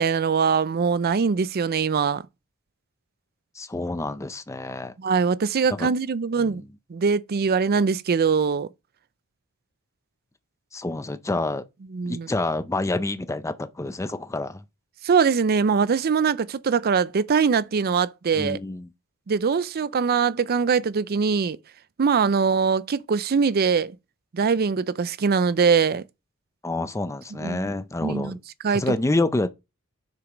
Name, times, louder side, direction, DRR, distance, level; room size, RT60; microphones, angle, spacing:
voice 1, 0.0-2.2 5.0-6.6 6.9-8.7 11.9-12.3 15.0-18.6 19.3-21.6 22.0-23.9 24.3-26.0 27.4-27.7 28.0-28.4 28.6-28.9, right 5 dB, 45° right, 0.4 m, -22 dB
voice 2, 3.6-4.9 5.7-5.9 6.4-6.6 10.7-11.6 12.0-14.6 18.3-18.9 26.6-28.3 28.7-29.5, left 2 dB, 15° left, 0.5 m, -28 dB
6.7 x 4.9 x 5.0 m
head